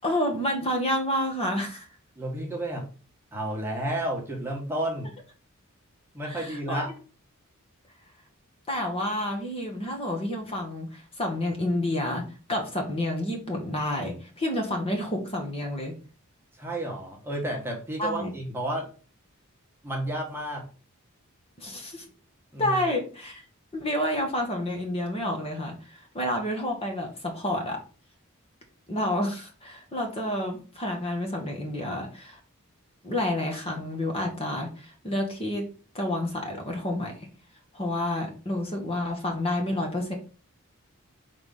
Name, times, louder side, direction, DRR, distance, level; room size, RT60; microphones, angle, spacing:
voice 1, 0.0-1.9 6.2-6.8 8.7-15.9 18.0-18.3 21.6-22.0 22.6-23.4 23.7-27.8 28.9-32.4 33.0-35.7 35.9-37.1 37.7-40.1, left 1 dB, 25° left, 2 dB, 1.3 m, -29 dB
voice 2, 2.1-2.9 3.3-5.1 6.1-6.9 16.6-18.9 19.8-20.7 22.5-22.8, right 1 dB, 10° right, -1 dB, 1.4 m, -31 dB
4.9 x 3.6 x 5.4 m, 0.36 s
head